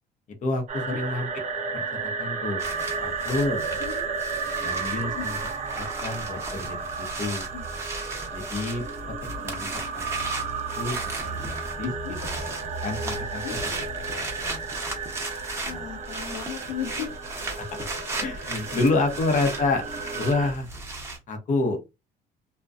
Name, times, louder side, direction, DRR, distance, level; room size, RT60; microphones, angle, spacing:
voice 1, 0.4-1.3 1.7-3.8 4.6-5.4 5.8-7.5 8.3-8.8 9.2-10.5 10.8-11.0 11.2-11.9 12.6-13.4 13.7-13.8 14.1-14.6 15.6-15.8 17.6-17.9 18.2-19.8 20.2-20.7 21.3-21.8, left 3 dB, 50° left, 5 dB, 0.8 m, -29 dB
sound 1, 0.7-20.5, right 5 dB, 45° right, 0.7 m, -33 dB
sound 2, 2.6-21.2, right 2 dB, 15° right, 0.8 m, -36 dB
voice 2, 3.8-4.3 5.1-5.3 7.5-7.6 11.8-12.2 13.4-13.5 15.6-17.1, left 9 dB, 85° left, 5 dB, 0.6 m, -36 dB
2.4 x 2.2 x 2.5 m, 0.24 s
cardioid pair, 110°, 17 cm